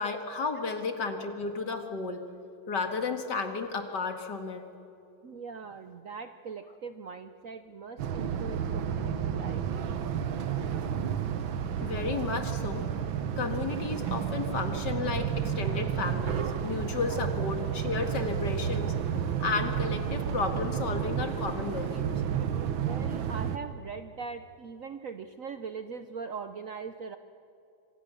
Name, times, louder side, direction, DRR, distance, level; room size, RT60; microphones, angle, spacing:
voice 1, 0.0-2.3 2.7-4.7 11.8-12.9 13.4-18.9 19.4-22.2, left 4 dB, 60° left, 6 dB, 2.5 m, -33 dB
voice 2, 5.2-9.7 22.8-27.2, right 5 dB, 55° right, 9 dB, 0.9 m, -41 dB
sound 1, 8.0-23.6, right 8 dB, 80° right, 1.9 m, -31 dB
27.0 x 25.5 x 7.0 m, 2.8 s
omnidirectional pair, 2.2 m